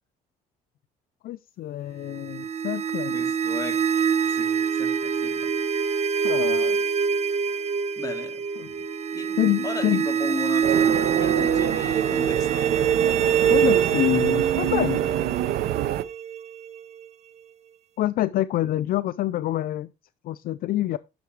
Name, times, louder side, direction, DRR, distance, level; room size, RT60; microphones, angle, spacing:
voice 1, 1.2-3.2 6.2-6.8 8.6-8.7 9.4-10.1 13.4-15.0 18.0-19.9 20.2-21.0, left 14 dB, 60° left, 0.4 m, -26 dB
sound 1, 2.1-17.0, right 7 dB, 40° right, 0.9 m, -25 dB
voice 2, 3.1-3.8 4.3-5.5 8.0-8.4 9.1-9.4 9.6-12.9, left 4 dB, 20° left, 2.2 m, -36 dB
sound 2, 10.6-16.0, right 12 dB, 70° right, 0.7 m, -26 dB
11.0 x 6.9 x 3.3 m
cardioid pair, 110°, 17 cm